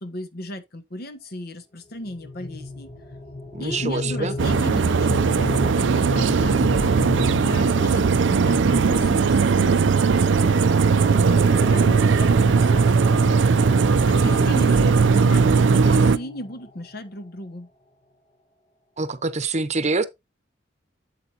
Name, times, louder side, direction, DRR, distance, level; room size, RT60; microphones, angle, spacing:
voice 1, 0.0-2.9 3.6-13.5 14.1-17.7, left 1 dB, 55° left, 1.1 m, -36 dB
sound 1, 2.1-16.9, left 2 dB, 40° left, 1.4 m, -33 dB
voice 2, 3.5-4.3 19.0-20.1, right 3 dB, 40° right, 0.8 m, -25 dB
sound 2, 4.4-16.2, right 5 dB, 80° right, 0.5 m, -18 dB
Organ, 5.6-16.5, left 1 dB, 15° left, 1.2 m, -39 dB
8.2 x 7.8 x 2.8 m
head